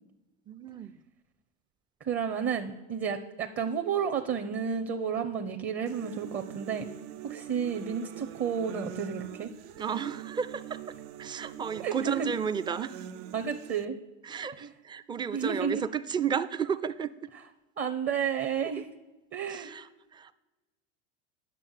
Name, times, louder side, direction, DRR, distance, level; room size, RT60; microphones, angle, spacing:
voice 1, 0.5-0.9 9.8-10.8 11.2-13.1 14.2-17.1 19.5-20.3, right 7 dB, 15° right, 13 dB, 0.4 m, -33 dB
voice 2, 2.0-6.9 7.2-9.5 11.8-12.3 13.3-13.9 14.6-14.7 15.3-15.8 17.8-18.9 19.3-19.7, right 7 dB, 35° right, 6 dB, 0.8 m, -31 dB
sound 1, 5.9-13.8, right 11 dB, 70° right, 0.6 m, -43 dB
9.1 x 6.6 x 7.3 m, 1.1 s
supercardioid pair, 110°, 35 cm